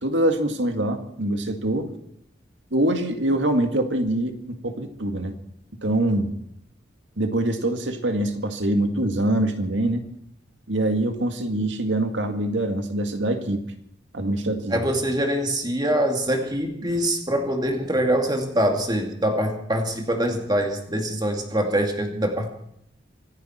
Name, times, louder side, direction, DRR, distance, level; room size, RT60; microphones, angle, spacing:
voice 1, 0.0-1.9 2.7-5.3 5.8-6.3 7.2-10.0 10.7-13.6 14.1-14.9, right 1 dB, 80° right, 6 dB, 2.1 m, -24 dB
voice 2, 14.7-22.5, right 1 dB, 20° right, 3 dB, 2.4 m, -24 dB
26.0 x 11.0 x 4.4 m, 0.74 s
head